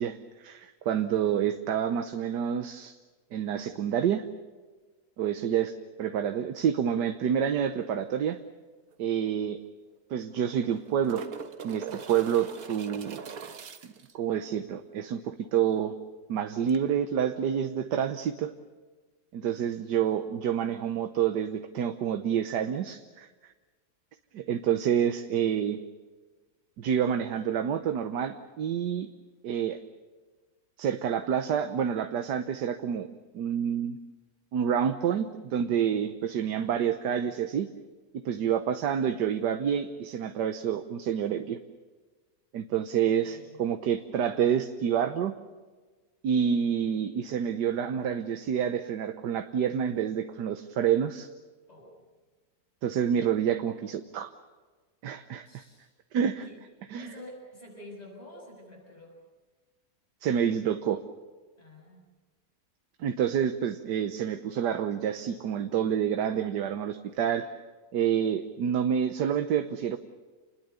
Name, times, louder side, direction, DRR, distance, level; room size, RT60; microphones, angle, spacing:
voice 1, 0.0-3.0 3.3-4.3 5.2-8.4 9.0-9.6 10.1-11.2 11.6-13.2 14.1-15.9 16.3-18.5 19.3-23.5 24.3-25.8 26.8-29.1 29.4-29.8 30.8-34.0 34.5-37.7 38.2-41.6 42.5-45.3 46.2-51.3 52.8-54.3 55.0-55.6 56.1-56.5 56.9-57.1 60.2-61.0 63.0-67.5 67.9-70.0, right 8 dB, 80° right, 7 dB, 1.5 m, -28 dB
sound 1, 8.9-9.0 9.3-9.4 10.4-14.1 16.7-16.8, right 6 dB, 60° right, 1.7 m, -41 dB
voice 2, 43.1-43.6 51.7-52.0 55.4-55.9 56.4-56.6 56.9-59.2 61.6-62.1, left 1 dB, 20° left, -1 dB, 6.8 m, -48 dB
28.0 x 21.0 x 6.9 m, 1.3 s
omnidirectional pair, 1.8 m